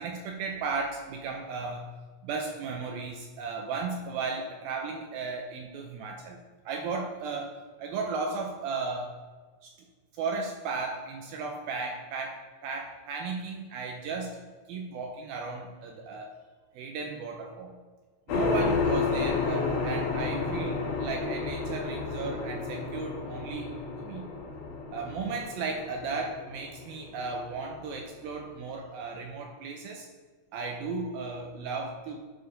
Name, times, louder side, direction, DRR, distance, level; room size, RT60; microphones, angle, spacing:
voice 1, 0.0-1.9 2.2-6.4 6.7-7.5 7.8-9.1 9.6-9.7 10.1-14.4 14.7-16.3 16.7-17.8 18.3-23.7 24.0-24.3 24.9-30.1 30.5-32.2, right 4 dB, 80° right, 2 dB, 2.2 m, -35 dB
sound 1, 18.3-28.4, left 4 dB, 75° left, 3.3 m, -31 dB
11.0 x 4.7 x 5.1 m, 1.4 s
omnidirectional pair, 4.9 m